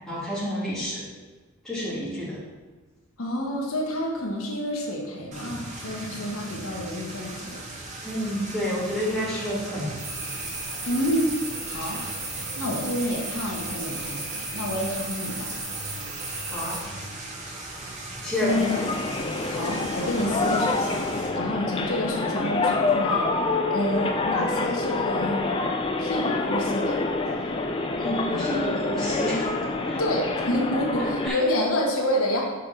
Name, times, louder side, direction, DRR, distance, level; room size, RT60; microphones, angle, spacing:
voice 1, 0.1-1.1 1.6-2.4 5.4-5.7 5.9-6.1 8.0-9.9 16.4-16.8 18.2-18.7 28.0-30.0 31.0-31.4, equal, ahead, -10 dB, 2.3 m, -30 dB
voice 2, 3.2-7.6 10.9-11.4 11.7-12.0 12.6-15.6 18.4-18.9 19.4-23.3 23.7-25.6 26.0-27.0 28.3-28.5 30.0-32.4, left 1 dB, 75° left, -1 dB, 1.2 m, -28 dB
sound 1, 5.3-21.3, right 2 dB, 35° right, 1.1 m, -38 dB
sound 2, 10.0-16.8, right 3 dB, 65° right, 1.9 m, -35 dB
sound 3, 18.5-31.3, left 3 dB, 25° left, 0.4 m, -27 dB
5.6 x 5.0 x 5.6 m, 1.3 s
head